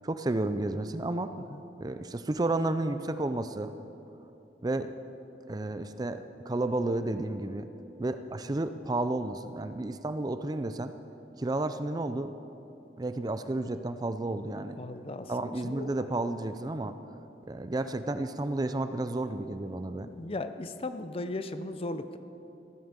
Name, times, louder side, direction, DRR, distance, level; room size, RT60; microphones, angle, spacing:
voice 1, 0.0-1.3 1.8-3.7 4.6-4.9 5.5-7.7 8.0-10.9 11.4-12.4 13.0-14.8 15.3-17.0 17.5-20.1, right 2 dB, 20° right, 10 dB, 0.4 m, -31 dB
voice 2, 14.8-15.9 20.0-22.2, left 2 dB, 30° left, 10 dB, 0.6 m, -37 dB
14.5 x 8.9 x 7.4 m, 2.8 s
head